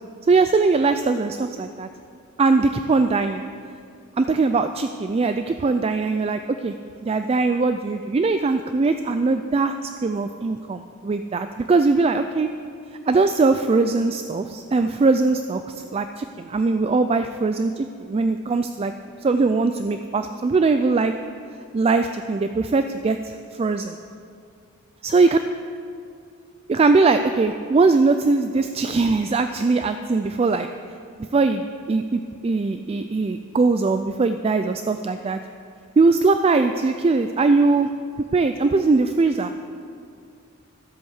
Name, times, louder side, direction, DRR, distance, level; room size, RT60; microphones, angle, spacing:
voice 1, 0.3-1.9 2.4-3.4 4.2-6.7 7.0-12.5 13.1-18.9 19.2-21.1 21.7-24.0 25.0-25.4 26.7-30.7 31.3-35.4 36.0-37.9 38.3-39.5, right 3 dB, 30° right, 8 dB, 0.3 m, -21 dB
13.5 x 8.1 x 6.4 m, 2.4 s
head